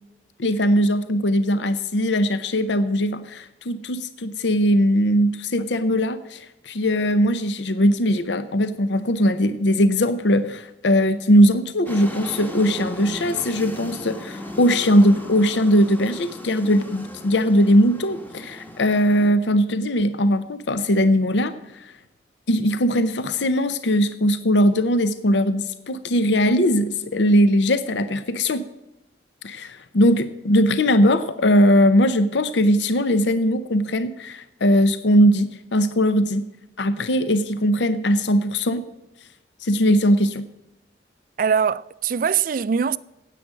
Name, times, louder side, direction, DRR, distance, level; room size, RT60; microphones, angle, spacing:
voice 1, 0.4-21.9 22.5-28.6 29.4-36.4 36.8-38.8 39.6-40.4, equal, 80° left, 0.7 m, -20 dB
sound 1, 11.9-19.3, equal, 10° left, 1.1 m, -37 dB
voice 2, 41.4-43.0, right 7 dB, 50° right, 0.4 m, -22 dB
9.9 x 8.5 x 7.5 m
head